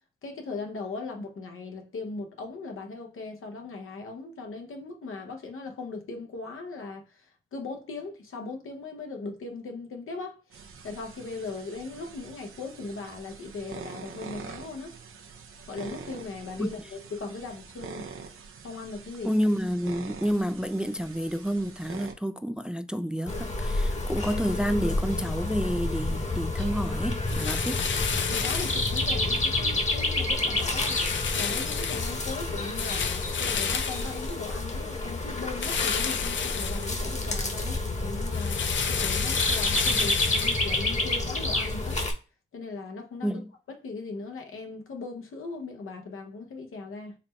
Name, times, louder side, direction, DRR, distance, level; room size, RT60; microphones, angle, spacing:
voice 1, 0.2-15.0 15.7-18.1 18.6-19.3 28.3-31.0 31.3-42.0 42.5-43.4 43.7-47.2, left 3 dB, 85° left, 0.9 m, -39 dB
sound 1, 10.5-22.1, right 5 dB, 85° right, 0.7 m, -45 dB
voice 2, 19.2-27.9 43.2-43.5, equal, 5° right, 0.3 m, -29 dB
sound 2, 23.3-42.1, left 2 dB, 35° left, 1.1 m, -29 dB
sound 3, 27.2-29.4 29.9-30.2 30.6-34.9 35.6-37.4 37.8-42.0, left 7 dB, 65° left, 0.5 m, -32 dB
4.1 x 2.1 x 4.3 m
cardioid pair, 55°, 21 cm